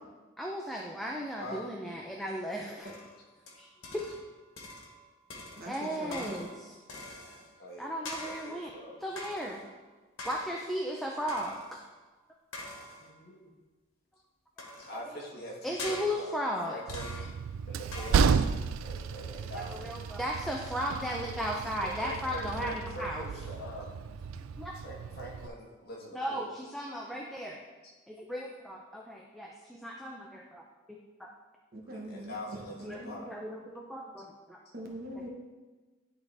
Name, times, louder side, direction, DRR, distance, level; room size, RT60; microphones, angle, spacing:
voice 1, 0.4-2.9 3.6-3.7 3.9-4.0 5.7-6.8 7.8-8.7 9.0-9.6 10.3-11.8 15.6-16.7 19.5-23.2 24.6-24.7 26.1-27.6 28.1-30.6 31.2-31.3 32.8-34.6, equal, ahead, -1 dB, 0.5 m, -36 dB
sound 1, 2.8-4.3 4.6-5.0 5.3-7.6 8.0-8.7 9.2-9.7 10.2-10.8 11.3-11.9 12.5-13.2 14.6-15.1 15.8-16.5 16.9-17.5 17.9-18.5, left 2 dB, 85° left, 1.4 m, -44 dB
voice 2, 5.6-6.4 31.7-32.6 32.9-33.2 34.7-35.3, right 1 dB, 45° right, 0 dB, 1.1 m, -42 dB
voice 3, 7.6-9.1 13.0-13.5 14.8-16.3 16.7-17.1 17.7-18.3 18.8-20.0 21.0-21.4 21.8-23.9 24.8-26.5 27.8-27.9 31.8-33.4, equal, 50° left, -3 dB, 1.5 m, -43 dB
Train, 16.9-25.5, right 6 dB, 90° right, 0.3 m, -33 dB
10.5 x 4.0 x 3.4 m, 1.3 s
head